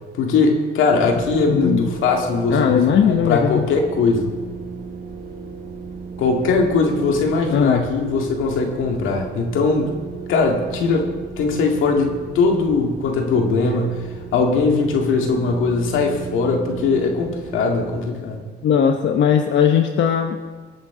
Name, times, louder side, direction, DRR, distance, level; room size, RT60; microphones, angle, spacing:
voice 1, 0.2-4.3 6.2-9.9 10.3-11.1 11.4-14.0 14.3-18.4, left 4 dB, 90° left, 2 dB, 2.1 m, -20 dB
sound 1, 0.9-18.1, right 5 dB, 45° right, 2.4 m, -35 dB
voice 2, 1.5-1.9 2.5-3.6 7.5-7.8 18.6-20.4, left 8 dB, 65° left, 5 dB, 0.9 m, -18 dB
24.0 x 9.0 x 3.8 m, 1.4 s
cardioid pair, 90°, 20 cm